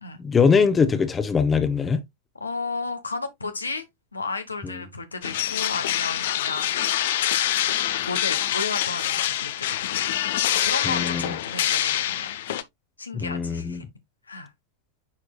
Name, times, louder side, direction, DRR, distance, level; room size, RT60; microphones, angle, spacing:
voice 1, 0.2-2.0 10.9-11.3 13.1-13.8, left 5 dB, 20° left, 1.0 m, -21 dB
voice 2, 2.3-3.8 4.1-7.0 8.1-9.8 10.6-12.4 13.0-13.8 14.3-14.5, left 3 dB, 80° left, 1.0 m, -33 dB
sound 1, 5.2-12.6, left 12 dB, 55° left, 0.7 m, -25 dB
9.9 x 4.5 x 2.3 m
figure-of-eight pair, 90°, 0 cm